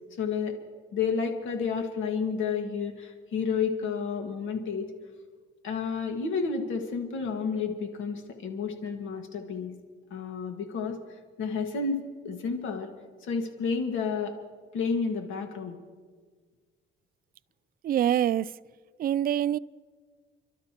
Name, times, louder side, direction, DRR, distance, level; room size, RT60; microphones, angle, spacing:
voice 1, 0.2-0.6 0.9-4.9 5.6-9.7 10.1-12.9 13.2-14.4 14.7-15.8, left 5 dB, 80° left, 1.9 m, -31 dB
voice 2, 17.8-18.5 19.0-19.6, right 11 dB, 50° right, 0.4 m, -25 dB
30.0 x 12.5 x 3.0 m
cardioid pair, 90°, 20 cm